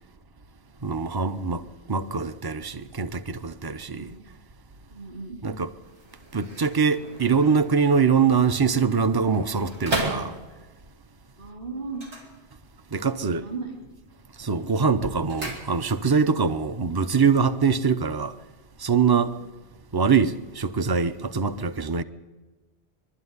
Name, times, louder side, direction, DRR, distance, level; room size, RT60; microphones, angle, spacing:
voice 1, 0.8-4.1 5.4-5.7 6.3-10.3 12.9-13.4 14.4-18.3 18.8-19.3 19.9-22.0, right 5 dB, 25° right, 0.6 m, -23 dB
voice 2, 4.9-5.4 11.4-12.0 13.3-13.8 19.3-19.5, right 4 dB, 55° right, 3.3 m, -36 dB
sound 1, 5.8-10.8 11.9-13.0 13.3-13.8 14.2-16.2 16.5-16.6, right 1 dB, 85° right, 3.6 m, -36 dB
23.0 x 12.0 x 9.6 m
omnidirectional pair, 1.1 m